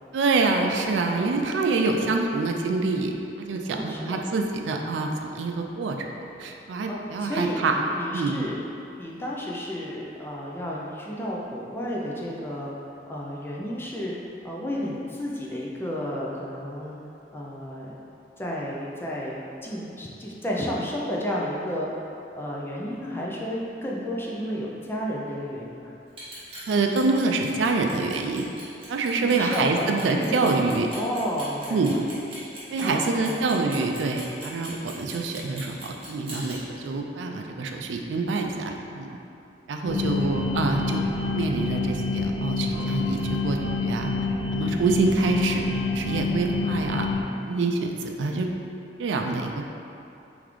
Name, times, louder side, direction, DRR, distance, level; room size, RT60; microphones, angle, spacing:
voice 1, 0.1-6.0 6.4-7.7 8.1-8.4 26.7-28.4 28.9-30.9 31.7-32.0 32.7-39.1 39.7-41.0 41.3-44.1 44.5-47.1 47.5-48.5 49.0-49.6, right 3 dB, 85° right, 3 dB, 0.4 m, -26 dB
voice 2, 3.7-4.2 6.9-8.6 9.0-12.7 13.1-14.1 14.4-17.0 17.3-17.9 18.4-21.9 22.3-25.9 29.2-30.6 30.9-32.0 32.8-33.5 39.9-40.4, equal, 15° left, -4 dB, 0.4 m, -32 dB
Clock, 26.1-36.6, right 2 dB, 30° right, 1.2 m, -41 dB
sound 1, 39.9-47.2, left 3 dB, 90° left, 0.6 m, -27 dB
3.9 x 3.4 x 3.1 m, 2.7 s
head